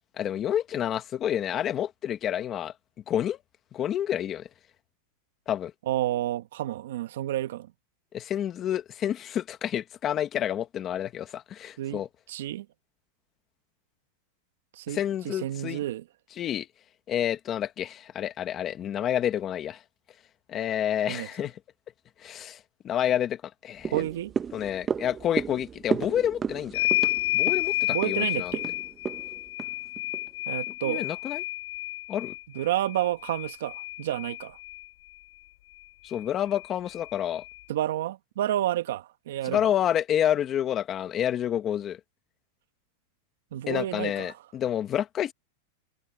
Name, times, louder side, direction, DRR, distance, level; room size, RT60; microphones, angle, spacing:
voice 1, 0.2-2.7 3.1-3.4 3.7-4.5 5.5-5.7 8.1-12.1 14.9-15.8 16.4-16.7 17.1-19.8 20.5-21.5 22.2-22.6 22.8-24.0 24.5-26.9 27.3-28.5 30.8-31.4 32.1-32.3 36.0-37.4 39.4-42.0 43.7-45.3, left 10 dB, 25° left, 1.5 m, -29 dB
voice 2, 5.9-7.7 11.8-12.7 14.7-16.0 21.1-21.3 23.9-24.3 27.9-28.7 30.5-31.1 32.5-34.6 37.7-39.6 43.5-44.3, right 13 dB, 75° right, 1.3 m, -30 dB
sound 1, 23.8-30.3 30.7-30.8, right 7 dB, 15° right, 0.9 m, -34 dB
sound 2, 26.7-34.9 36.1-36.2 36.5-37.6, left 17 dB, 65° left, 3.2 m, -31 dB
supercardioid pair, 155°, 0 cm